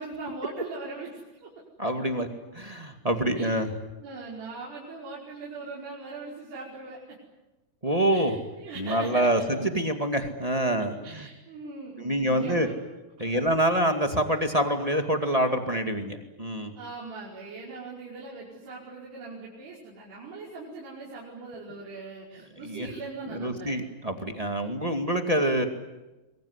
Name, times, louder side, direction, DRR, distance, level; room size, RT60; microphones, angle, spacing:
voice 1, 0.0-1.5 3.4-3.5 4.0-7.2 8.1-9.5 11.0-12.7 13.2-13.4 16.8-23.7, right 3 dB, 70° right, -5 dB, 7.3 m, -40 dB
voice 2, 1.8-2.3 2.5-3.7 7.8-8.4 8.8-11.3 12.0-12.7 13.2-16.7 22.5-22.9 23.3-25.6, right 1 dB, 20° right, 5 dB, 0.9 m, -26 dB
26.5 x 23.0 x 9.8 m, 1.0 s
omnidirectional pair, 4.8 m